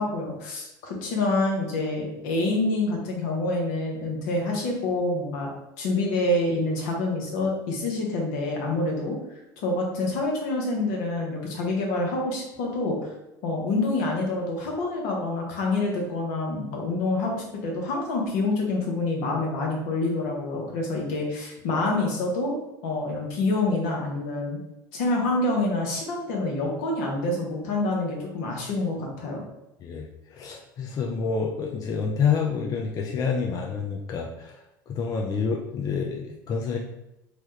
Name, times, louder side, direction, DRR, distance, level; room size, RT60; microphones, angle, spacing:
voice 1, 0.0-5.5 5.8-9.2 9.6-13.1 13.4-22.5 22.8-24.6 24.9-29.4, left 2 dB, 70° left, -1 dB, 0.9 m, -27 dB
voice 2, 29.8-36.8, left 5 dB, 35° left, 1 dB, 0.4 m, -28 dB
3.1 x 2.3 x 3.1 m, 0.90 s
hypercardioid pair, 80°, 10 cm